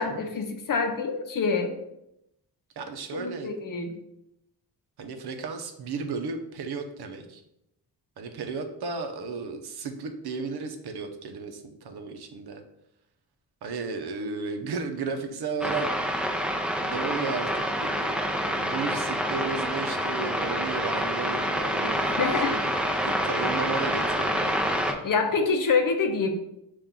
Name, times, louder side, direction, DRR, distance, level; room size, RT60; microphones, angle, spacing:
voice 1, 0.0-1.8 3.1-3.9 22.2-22.6 23.2-23.3 25.0-26.3, left 4 dB, 55° left, 5 dB, 0.7 m, -26 dB
voice 2, 2.8-3.5 5.0-7.4 8.2-12.6 13.6-15.9 16.8-18.2 18.6-22.6 23.0-25.0, right 4 dB, 75° right, 6 dB, 0.7 m, -34 dB
sound 1, 15.6-24.9, equal, ahead, 0.6 m, -27 dB
5.6 x 2.5 x 3.7 m, 0.82 s
cardioid pair, 100°, 40 cm